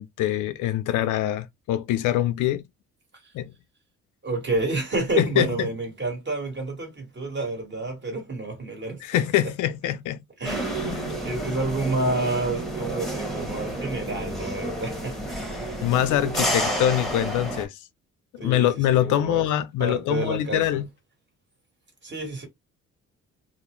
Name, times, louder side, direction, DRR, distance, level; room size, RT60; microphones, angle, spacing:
voice 1, 0.0-2.6 3.3-3.5 5.2-5.7 9.0-10.2 10.7-11.2 15.8-17.8 18.3-20.9, left 12 dB, 80° left, 0.4 m, -24 dB
voice 2, 4.2-9.2 10.4-15.2 18.4-18.7 19.0-19.5 19.8-20.8 22.0-22.5, right 2 dB, 35° right, 1.4 m, -29 dB
sound 1, 10.4-17.7, right 1 dB, ahead, 0.9 m, -30 dB
2.4 x 2.1 x 3.0 m
cardioid pair, 90°, 30 cm